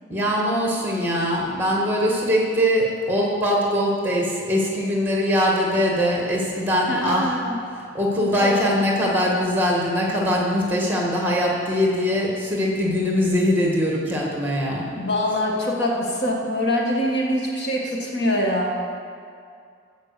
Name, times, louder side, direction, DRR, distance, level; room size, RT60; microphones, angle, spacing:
voice 1, 0.1-7.3 7.9-14.9, equal, 10° right, -2 dB, 1.6 m, -22 dB
voice 2, 6.9-7.6 8.3-8.8 14.9-18.8, left 1 dB, 55° left, -1 dB, 1.5 m, -24 dB
15.5 x 5.2 x 6.7 m, 2.3 s
head